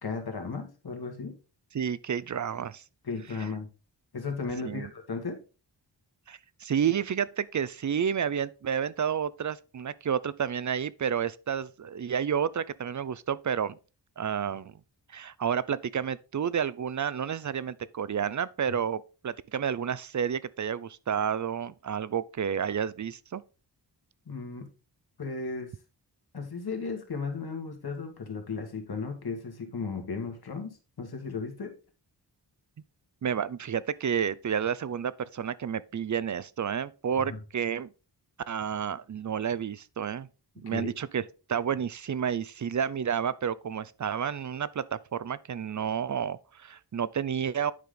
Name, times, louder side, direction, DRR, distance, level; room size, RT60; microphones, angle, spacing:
voice 1, 0.0-1.4 3.0-3.7 4.1-5.4 24.3-24.7 25.2-25.7 26.3-31.8 37.3-37.4 40.6-40.9, left 4 dB, 60° left, 1.8 m, -35 dB
voice 2, 1.7-2.8 4.6-4.9 6.3-13.8 14.2-14.7 15.1-23.4 33.2-37.9 38.5-40.3 40.6-41.2 41.5-47.7, right 8 dB, 45° right, 0.5 m, -30 dB
9.5 x 5.0 x 3.8 m
wide cardioid pair, 100°, 42 cm